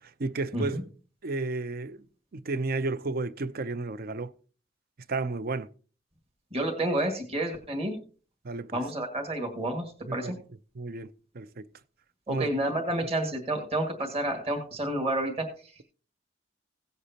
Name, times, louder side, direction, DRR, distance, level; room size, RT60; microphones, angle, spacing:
voice 1, 0.2-0.8 1.2-2.0 2.3-4.3 5.1-5.7 8.4-8.8 10.1-10.2 10.8-11.7 12.3-12.5, right 3 dB, 55° right, 0.6 m, -32 dB
voice 2, 6.5-8.0 8.7-10.4 12.3-15.8, right 1 dB, 35° right, 1.9 m, -30 dB
17.0 x 8.1 x 2.8 m
head